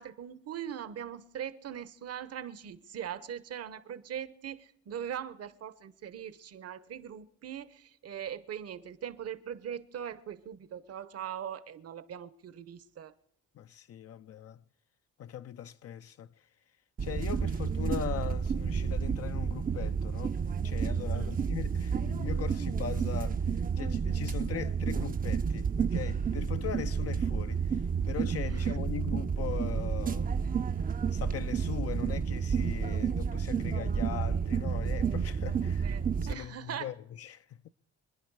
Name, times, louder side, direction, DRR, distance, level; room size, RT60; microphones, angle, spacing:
voice 1, 0.0-13.1 21.1-21.4 28.5-28.8 35.8-36.9, right 9 dB, 55° right, 0.9 m, -41 dB
voice 2, 13.6-14.6 15.2-16.3 17.0-20.4 20.6-30.6 31.1-35.9 36.2-37.7, left 10 dB, 50° left, 0.5 m, -40 dB
sound 1, 17.0-36.3, right 6 dB, 30° right, 0.6 m, -30 dB
25.5 x 10.5 x 4.8 m
cardioid pair, 90°, 30 cm